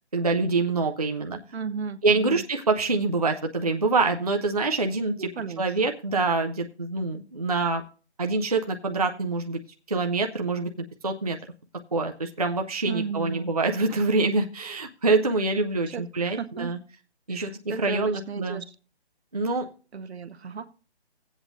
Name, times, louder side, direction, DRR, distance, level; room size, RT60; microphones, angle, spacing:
voice 1, 0.1-1.4 2.0-5.3 5.6-7.8 8.2-9.6 9.9-10.7 11.0-11.4 11.9-16.8 17.3-17.5 17.8-18.6 19.3-19.7, right 3 dB, 35° right, 3 dB, 0.4 m, -25 dB
voice 2, 1.5-2.4 5.2-5.9 12.9-13.5 15.9-16.7 17.3-18.6 19.9-20.7, right 5 dB, 70° right, 11 dB, 0.8 m, -35 dB
17.0 x 8.0 x 2.5 m, 0.37 s
hypercardioid pair, 175°, 33 cm